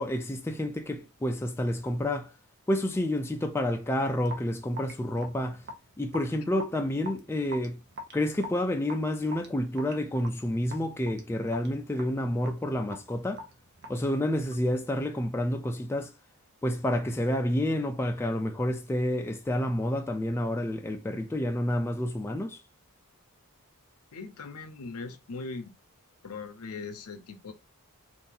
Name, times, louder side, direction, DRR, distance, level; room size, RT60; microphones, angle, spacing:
voice 1, 0.0-2.3 2.7-5.6 6.0-7.8 8.1-13.4 13.9-16.1 16.6-22.6, left 1 dB, 10° left, 0.3 m, -29 dB
Raindrop / Drip, 4.2-14.8, equal, 50° right, 0.7 m, -45 dB
voice 2, 24.1-25.7 26.2-27.5, left 4 dB, 75° left, 0.6 m, -40 dB
2.7 x 2.6 x 3.8 m
head